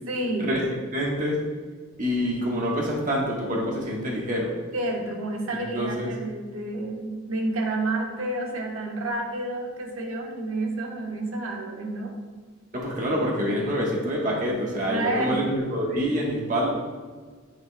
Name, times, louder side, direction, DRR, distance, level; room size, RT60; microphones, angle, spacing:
voice 1, 0.1-0.6 4.7-12.1 14.9-15.4, right 2 dB, 90° right, 0 dB, 1.1 m, -29 dB
voice 2, 0.9-1.4 2.0-4.5 5.5-6.1 12.7-16.7, equal, 40° right, -2 dB, 1.3 m, -26 dB
9.0 x 5.2 x 2.2 m, 1.5 s
head